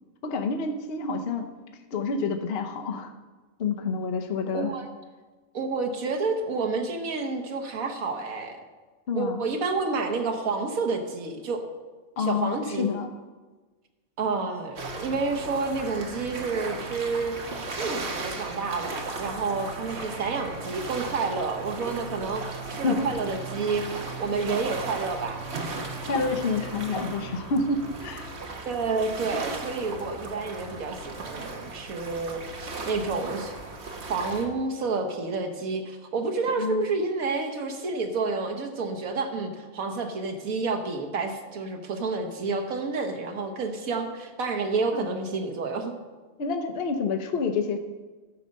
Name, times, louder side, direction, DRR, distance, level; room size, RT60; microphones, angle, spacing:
voice 1, 0.2-1.5 1.9-3.1 3.6-4.7 9.1-9.4 12.2-13.1 22.8-23.1 26.1-28.3 36.6-36.8 44.9-45.1 46.4-47.8, left 4 dB, 50° left, 5 dB, 0.9 m, -28 dB
voice 2, 4.5-4.8 5.5-8.6 9.2-11.7 12.2-12.9 14.2-17.4 17.8-23.9 24.2-25.7 28.6-33.5 33.8-45.9, right 4 dB, 80° right, 4 dB, 1.6 m, -29 dB
sound 1, 14.8-34.5, right 3 dB, 55° right, 1.4 m, -36 dB
12.5 x 6.4 x 5.3 m, 1.3 s
omnidirectional pair, 1.5 m